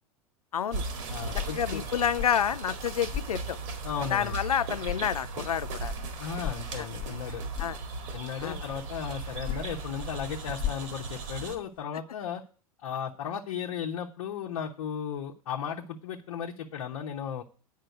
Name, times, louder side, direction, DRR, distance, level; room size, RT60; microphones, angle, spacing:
voice 1, 0.5-0.8 1.5-3.6 4.1-5.9 6.8-6.9 7.6-7.8 8.4-8.6, left 9 dB, 80° left, 0.4 m, -29 dB
sound 1, 0.7-11.6, right 3 dB, 55° right, 2.0 m, -37 dB
voice 2, 1.1-1.8 3.8-4.4 6.2-7.4 8.1-12.4 12.8-17.4, left 8 dB, 60° left, 1.0 m, -35 dB
sound 2, 1.2-4.5 4.8-8.4 9.2-11.8, left 10 dB, 25° left, 1.0 m, -40 dB
9.0 x 5.5 x 7.8 m
figure-of-eight pair, 90°, 19 cm